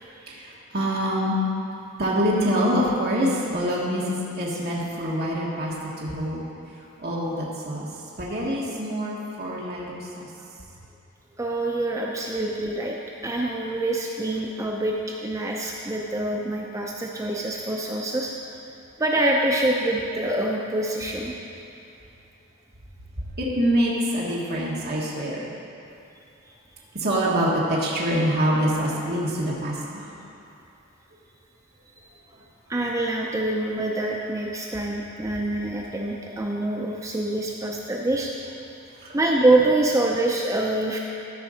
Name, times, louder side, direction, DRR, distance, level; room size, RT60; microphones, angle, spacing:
voice 1, 0.3-1.4 2.0-6.5 7.0-10.3 23.2-25.5 26.9-30.1 39.0-39.2, equal, 45° right, -5 dB, 1.4 m, -25 dB
voice 2, 11.4-13.0 13.2-18.3 19.0-21.3 32.7-38.3 39.1-41.0, right 1 dB, 15° right, -1 dB, 0.5 m, -25 dB
13.5 x 5.3 x 5.0 m, 2.8 s
head